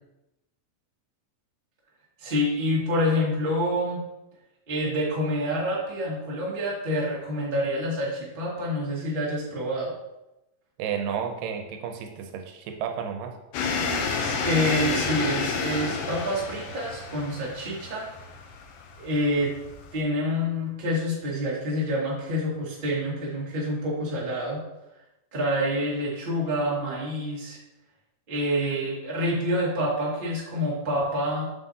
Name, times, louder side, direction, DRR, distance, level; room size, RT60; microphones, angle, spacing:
voice 1, 2.2-4.0 4.7-9.9 14.2-18.1 19.0-19.5 19.9-24.6 25.3-27.6 28.3-31.4, equal, 20° right, -6 dB, 1.4 m, -27 dB
voice 2, 10.8-13.3, right 7 dB, 85° right, 4 dB, 2.3 m, -32 dB
sound 1, 13.5-20.0, left 5 dB, 85° left, 2.5 m, -30 dB
7.3 x 6.5 x 2.8 m, 0.93 s
omnidirectional pair, 3.9 m